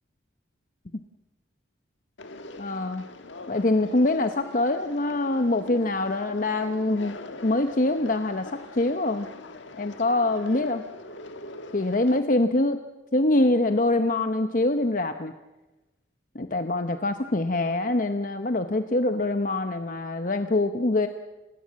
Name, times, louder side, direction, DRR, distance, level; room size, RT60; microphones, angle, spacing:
Conversation, 2.2-12.2, left 2 dB, 85° left, 1.5 m, -43 dB
voice 1, 2.6-3.1 3.5-7.2 7.4-9.3 9.8-10.8 11.7-12.8 13.1-15.3 16.3-21.1, left 2 dB, 45° left, 8 dB, 0.8 m, -24 dB
30.0 x 17.0 x 7.5 m, 1.1 s
head